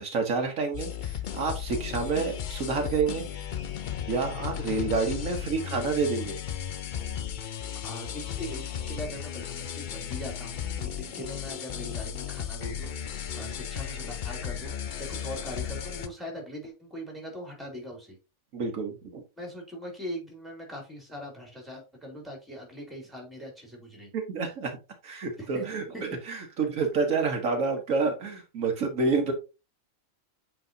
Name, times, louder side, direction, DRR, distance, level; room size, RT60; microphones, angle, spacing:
voice 1, 0.0-3.5 4.1-6.4 18.5-19.2 24.1-24.8 25.0-25.8 26.3-29.3, right 4 dB, 70° right, 1.5 m, -28 dB
sound 1, 0.7-16.1, left 9 dB, 55° left, 0.5 m, -35 dB
voice 2, 7.8-18.2 19.4-24.1 25.4-26.0, equal, ahead, 2.5 m, -41 dB
8.0 x 4.8 x 2.7 m
omnidirectional pair, 1.5 m